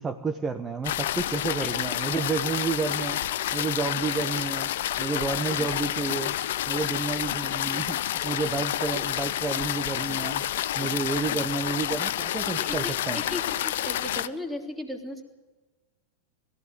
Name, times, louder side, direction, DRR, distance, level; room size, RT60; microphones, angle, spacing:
voice 1, 0.0-3.2 3.5-4.7 5.0-6.4 6.7-10.4 10.7-13.2, right 4 dB, 20° right, 6 dB, 1.2 m, -30 dB
sound 1, 0.8-14.3, left 12 dB, 55° left, 0.7 m, -29 dB
voice 2, 1.6-2.2 11.3-11.4 12.5-15.2, left 1 dB, ahead, 3 dB, 3.2 m, -37 dB
21.5 x 15.5 x 9.5 m, 1.3 s
figure-of-eight pair, 90°, 0 cm